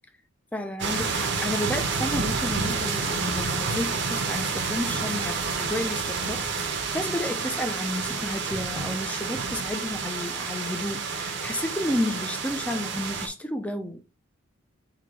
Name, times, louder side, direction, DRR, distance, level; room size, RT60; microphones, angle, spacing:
voice 1, 0.5-14.0, left 1 dB, 5° left, 0.5 m, -32 dB
sound 1, 0.8-13.3, right 4 dB, 60° right, 0.8 m, -29 dB
3.9 x 2.8 x 4.6 m
head